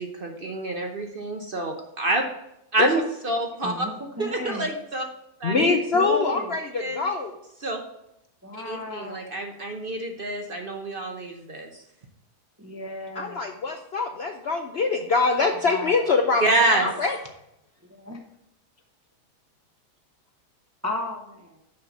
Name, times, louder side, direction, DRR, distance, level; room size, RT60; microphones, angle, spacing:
voice 1, 0.0-2.2 2.7-3.9 4.2-5.0 5.4-5.5 6.8-7.0 7.6-7.8 8.7-11.8 16.4-16.9, right 2 dB, 45° right, 3 dB, 0.8 m, -27 dB
voice 2, 3.6-4.7 5.5-6.6 8.4-9.2 12.6-13.4 15.6-16.1 17.9-18.2 20.8-21.6, left 1 dB, 15° right, 2 dB, 0.5 m, -33 dB
voice 3, 5.4-7.3 13.2-17.2, left 4 dB, 60° left, 4 dB, 0.7 m, -24 dB
6.5 x 5.6 x 6.0 m, 0.82 s
omnidirectional pair, 1.7 m